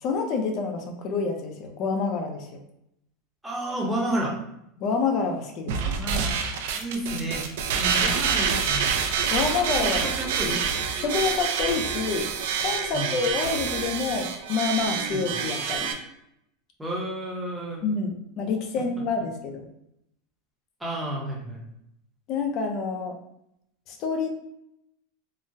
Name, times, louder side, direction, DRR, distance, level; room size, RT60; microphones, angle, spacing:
voice 1, 0.0-2.6 4.8-6.0 7.7-8.2 9.3-10.1 10.4-10.6 11.0-15.9 17.8-19.7 22.3-23.2 23.9-24.3, left 4 dB, 30° left, 3 dB, 0.5 m, -28 dB
voice 2, 3.4-4.4 5.8-6.3 6.8-7.5 7.9-8.9 9.8-10.5 12.9-13.1 15.1-15.2 16.8-17.8 20.8-21.6, right 1 dB, 5° right, -4 dB, 0.7 m, -31 dB
sound 1, 5.7-15.9, right 6 dB, 65° right, 0.4 m, -27 dB
3.8 x 2.1 x 2.6 m, 0.79 s
supercardioid pair, 175°, 0 cm